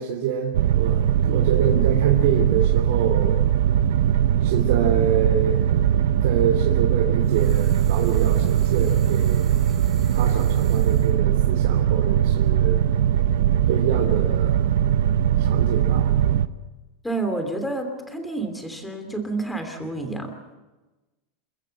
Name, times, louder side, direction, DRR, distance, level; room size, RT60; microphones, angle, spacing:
voice 1, 0.0-3.4 4.4-5.7 6.2-9.5 10.1-12.9 13.7-14.6 15.4-16.1, right 8 dB, 65° right, 0 dB, 3.0 m, -26 dB
sound 1, 0.5-16.5, right 10 dB, 85° right, 0.9 m, -20 dB
sound 2, 7.2-11.2, right 6 dB, 25° right, 4.3 m, -48 dB
voice 2, 17.0-20.6, right 2 dB, 5° left, 5 dB, 3.0 m, -29 dB
28.0 x 15.0 x 7.9 m, 1.2 s
supercardioid pair, 165°, 0 cm